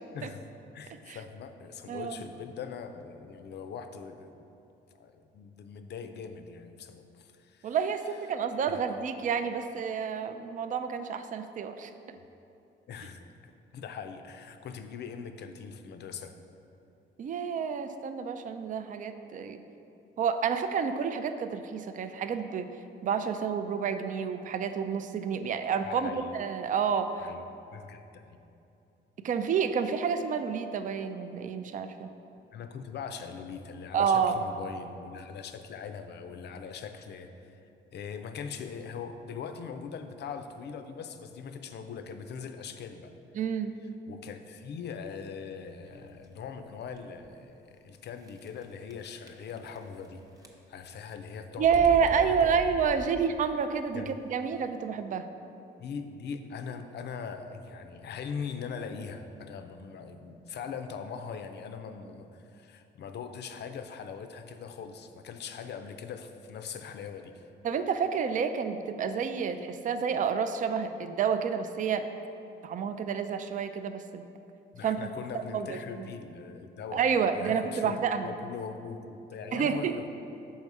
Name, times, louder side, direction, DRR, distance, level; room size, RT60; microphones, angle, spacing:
voice 1, 0.1-0.5 0.7-4.3 5.0-7.8 8.7-8.8 12.9-16.3 25.8-26.3 27.2-27.4 27.7-28.4 32.5-37.6 37.9-43.1 44.1-50.2 50.7-52.6 53.1-53.2 53.9-54.2 55.8-67.5 74.7-78.0 78.2-80.1, left 6 dB, 60° left, 8 dB, 0.5 m, -41 dB
voice 2, 1.9-2.2 7.6-12.2 17.2-19.6 20.2-22.7 23.0-27.3 29.2-32.1 33.9-34.4 43.3-43.8 51.6-55.3 67.6-72.1 72.6-74.2 74.8-75.0 75.3-76.1 76.9-78.3 79.5-80.0, right 6 dB, 40° right, 9 dB, 0.4 m, -29 dB
sound 1, 45.8-46.3 46.9-47.0 47.2-47.3 48.2-48.6 48.9-50.1 50.4-50.9 51.6-53.5, right 1 dB, 20° right, 0.7 m, -42 dB
5.6 x 4.3 x 4.7 m, 2.8 s
cardioid pair, 90°, 20 cm